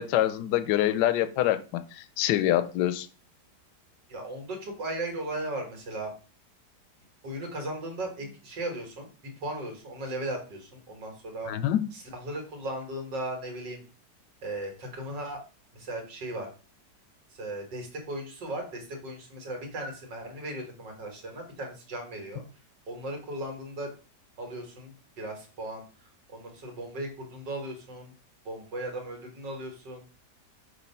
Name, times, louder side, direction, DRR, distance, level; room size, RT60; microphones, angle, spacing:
voice 1, 0.0-3.1 11.5-11.8, left 12 dB, 75° left, 12 dB, 1.2 m, -25 dB
voice 2, 4.1-6.1 7.2-9.1 9.4-11.5 11.9-13.8 14.4-15.4 15.7-16.5 17.3-22.4 22.9-23.9 24.4-25.8 26.3-28.1 28.5-30.1, right 1 dB, 85° right, 3 dB, 2.3 m, -37 dB
6.4 x 2.8 x 5.5 m, 0.36 s
omnidirectional pair, 1.9 m